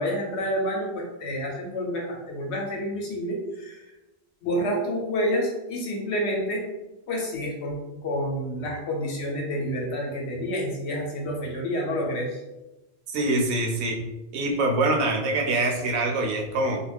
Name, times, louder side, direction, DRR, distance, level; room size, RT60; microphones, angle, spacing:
voice 1, 0.0-3.8 4.4-6.6 7.1-7.8 8.0-12.4, equal, 85° left, -1 dB, 1.0 m, -28 dB
voice 2, 13.1-14.0 14.3-16.8, right 2 dB, 85° right, 1 dB, 0.9 m, -24 dB
2.4 x 2.2 x 3.3 m, 1.0 s
omnidirectional pair, 1.1 m